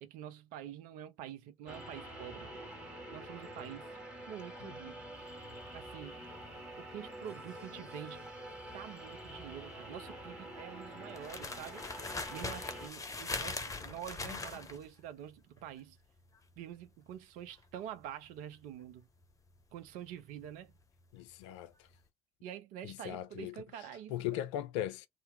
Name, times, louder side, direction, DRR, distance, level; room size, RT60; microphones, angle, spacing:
voice 1, 0.0-2.7 3.1-3.9 4.3-5.0 5.7-6.3 6.8-8.3 8.7-11.8 12.3-16.0 16.6-19.1 19.7-20.7 22.4-24.4, right 10 dB, 65° right, 0.5 m, -47 dB
sound 1, 1.7-12.9, right 1 dB, 5° right, 1.7 m, -47 dB
sound 2, 5.2-21.4 21.6-22.0, left 3 dB, 20° left, 0.7 m, -43 dB
voice 2, 21.1-21.7 22.8-23.5 24.1-25.1, left 12 dB, 75° left, 0.4 m, -38 dB
2.8 x 2.0 x 3.0 m
figure-of-eight pair, 45°, 15 cm